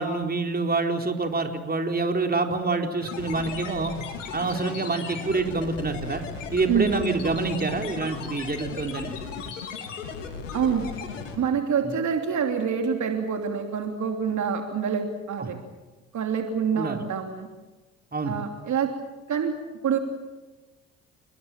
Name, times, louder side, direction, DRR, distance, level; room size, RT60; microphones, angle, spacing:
voice 1, 0.0-3.9 4.3-6.2 6.5-9.1 11.8-12.0 15.4-15.5 16.7-17.0 18.1-18.4, right 3 dB, 25° right, 4 dB, 4.0 m, -27 dB
sound 1, 3.0-11.4, left 6 dB, 90° left, 3.1 m, -36 dB
voice 2, 10.5-10.9 11.3-15.6 16.1-17.5 18.2-18.9 19.3-19.5 19.8-20.0, right 7 dB, 50° right, 4 dB, 3.0 m, -26 dB
30.0 x 21.0 x 7.4 m, 1.2 s
hypercardioid pair, 55°, 36 cm